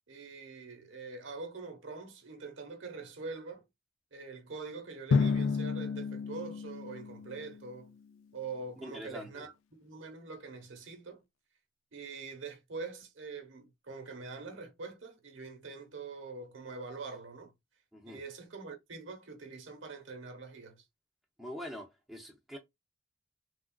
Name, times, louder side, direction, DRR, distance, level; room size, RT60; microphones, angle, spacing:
voice 1, 0.1-3.6 4.1-7.9 8.3-9.5 9.8-11.2 11.9-17.5 18.0-20.8, right 4 dB, 75° right, 0.9 m, -44 dB
Drum, 5.1-7.8, left 5 dB, 75° left, 0.3 m, -31 dB
voice 2, 8.8-9.5 17.9-18.2 21.4-22.6, equal, ahead, 0.5 m, -44 dB
3.4 x 2.3 x 2.2 m
head